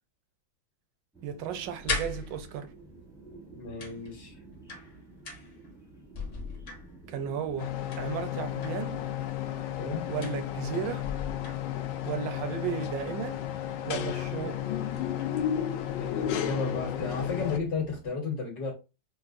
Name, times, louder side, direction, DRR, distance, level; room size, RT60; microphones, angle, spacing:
sound 1, 1.1-18.1, right 2 dB, 5° right, 0.4 m, -51 dB
voice 1, 1.2-2.7 7.1-9.0 10.1-11.1 12.0-13.4 13.8-14.6, right 8 dB, 75° right, 1.2 m, -34 dB
sound 2, 1.6-2.8 3.8-5.7 6.0-7.3 7.9-8.9 10.2-10.7 11.0-12.0 13.6-13.7 14.2-14.4 14.7-15.5, left 4 dB, 45° left, 0.9 m, -39 dB
voice 2, 3.5-4.4 9.8-10.1 16.0-18.7, left 4 dB, 60° left, 1.6 m, -33 dB
sound 3, 7.6-17.6, left 11 dB, 90° left, 1.4 m, -33 dB
5.6 x 2.1 x 2.5 m
omnidirectional pair, 2.1 m